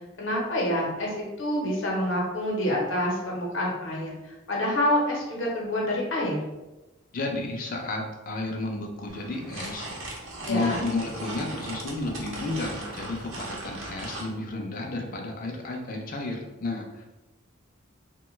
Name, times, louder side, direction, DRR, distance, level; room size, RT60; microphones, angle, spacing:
voice 1, 0.2-6.4 10.4-10.8, left 1 dB, 70° left, -2 dB, 0.8 m, -27 dB
voice 2, 7.1-9.9 10.5-17.1, left 2 dB, 45° left, 2 dB, 0.4 m, -32 dB
sound 1, 9.1-14.3, right 2 dB, 75° right, 0.7 m, -38 dB
3.0 x 2.2 x 3.1 m, 1.1 s
head